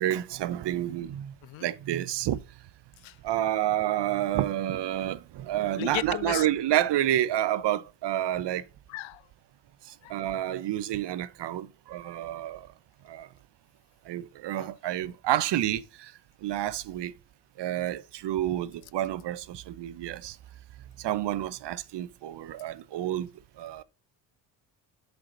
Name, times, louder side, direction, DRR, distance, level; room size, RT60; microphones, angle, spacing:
voice 1, 0.0-1.3 1.6-2.4 3.2-8.6 10.1-12.7 13.1-13.3 14.1-16.1 16.4-17.1 17.6-20.4 21.0-23.3 23.6-23.8, right 12 dB, 55° right, 1.0 m, -29 dB
voice 2, 5.8-6.5 8.9-9.3 10.0-10.2 14.6-14.7, left 17 dB, 70° left, 0.8 m, -35 dB
8.0 x 7.2 x 4.0 m
hypercardioid pair, 60°, 49 cm